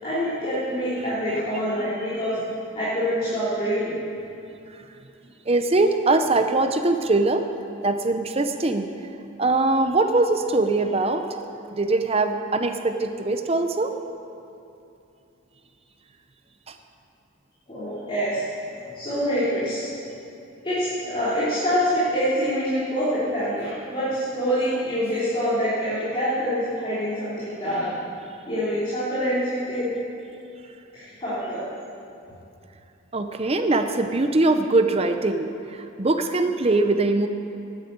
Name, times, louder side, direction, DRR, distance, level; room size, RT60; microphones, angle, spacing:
voice 1, 0.0-2.4 2.7-3.9 17.7-18.4 18.9-19.9 20.6-27.9 28.5-29.9 30.9-31.6, equal, 25° left, -12 dB, 3.3 m, -25 dB
voice 2, 5.5-7.4 7.8-8.9 9.4-11.3 11.7-14.0 16.7-16.8 33.1-37.3, right 2 dB, 30° right, 7 dB, 0.6 m, -22 dB
9.8 x 9.1 x 8.7 m, 2.7 s
head